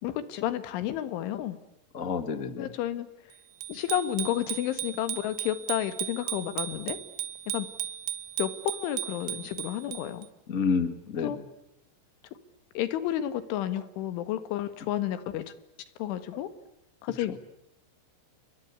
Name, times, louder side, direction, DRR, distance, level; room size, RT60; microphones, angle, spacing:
voice 1, 0.0-1.6 2.6-3.1 3.7-7.0 7.5-7.7 8.4-10.3 11.2-11.4 12.8-15.5 16.0-16.5 17.0-17.4, left 12 dB, 90° left, 12 dB, 4.2 m, -31 dB
voice 2, 1.9-2.7 10.5-11.3, left 5 dB, 70° left, 11 dB, 0.7 m, -29 dB
Bicycle bell, 3.6-10.3, right 12 dB, 80° right, 3.5 m, -36 dB
30.0 x 23.5 x 8.3 m, 0.84 s
omnidirectional pair, 5.3 m